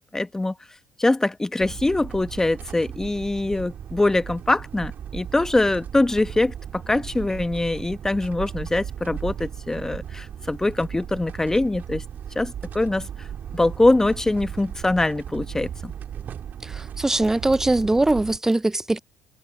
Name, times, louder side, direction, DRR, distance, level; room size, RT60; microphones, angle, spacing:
voice 1, 0.1-0.5 1.0-12.0 12.3-13.1 13.5-15.9, left 2 dB, 15° left, 1.3 m, -23 dB
sound 1, 1.6-18.4, right 9 dB, 55° right, 2.5 m, -36 dB
voice 2, 16.6-19.0, right 2 dB, 15° right, 0.8 m, -21 dB
hypercardioid pair, 60°, 4 cm